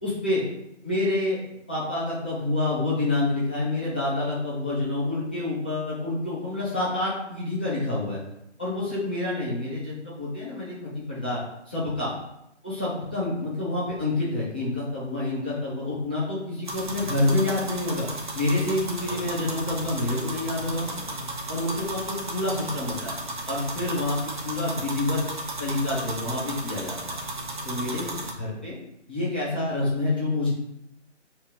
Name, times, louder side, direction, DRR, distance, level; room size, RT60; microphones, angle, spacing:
voice 1, 0.0-0.4 0.8-1.4 1.7-8.2 8.6-12.1 12.6-18.1 18.3-21.0 21.5-23.1 23.5-25.2 25.6-27.2 27.6-28.1 28.3-28.7 29.1-30.5, left 2 dB, 10° left, -11 dB, 0.8 m, -28 dB
sound 1, 16.6-28.3, right 1 dB, 40° right, 1.2 m, -34 dB
5.7 x 3.4 x 4.9 m, 0.81 s
figure-of-eight pair, 165°, 37 cm